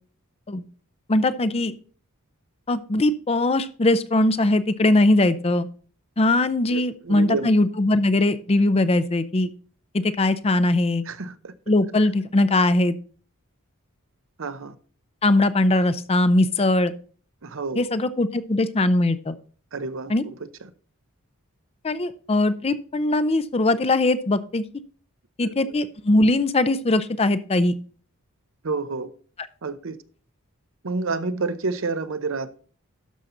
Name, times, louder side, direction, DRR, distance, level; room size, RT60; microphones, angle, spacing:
voice 1, 1.1-1.7 2.7-5.7 6.2-9.5 9.9-11.0 11.7-13.0 15.2-16.9 17.8-19.3 20.1-20.2 21.8-24.6 25.4-27.7, left 2 dB, 30° left, 0.5 m, -20 dB
voice 2, 6.7-7.5 11.1-11.5 14.4-14.7 17.4-17.8 19.7-20.5 25.4-25.7 28.6-29.1 29.6-30.0 30.8-32.5, right 3 dB, 60° right, 0.7 m, -29 dB
12.5 x 5.7 x 3.8 m
head